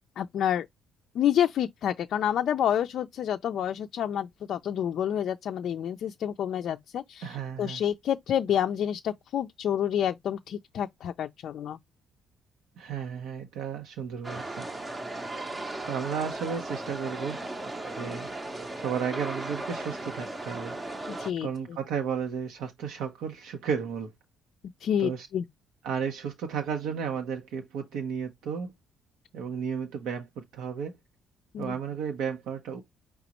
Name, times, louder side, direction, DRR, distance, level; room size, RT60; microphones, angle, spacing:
voice 1, 0.2-0.7 1.1-11.8 21.1-21.5 24.8-25.4 31.5-31.8, left 10 dB, 55° left, 0.3 m, -28 dB
voice 2, 7.2-7.8 12.8-14.7 15.9-17.4 17.9-20.8 21.4-24.1 25.0-25.3 25.8-28.7 29.3-31.0 31.6-32.8, right 7 dB, 85° right, 0.8 m, -33 dB
sound 1, 14.2-21.3, right 2 dB, 15° right, 0.6 m, -36 dB
5.1 x 3.5 x 2.9 m
cardioid pair, 145°, 0 cm